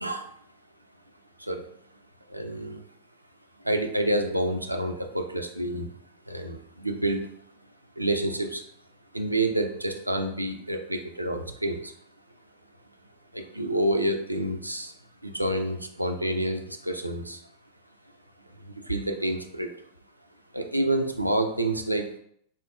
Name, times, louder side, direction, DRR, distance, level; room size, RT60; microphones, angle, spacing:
voice 1, 2.3-2.8 3.6-5.9 6.3-7.2 8.0-8.6 9.1-11.9 13.3-14.9 15.2-17.4 18.9-19.7 20.5-22.1, right 1 dB, 85° right, 5 dB, 0.3 m, -28 dB
3.5 x 2.2 x 2.5 m, 0.66 s
figure-of-eight pair, 90°, 0 cm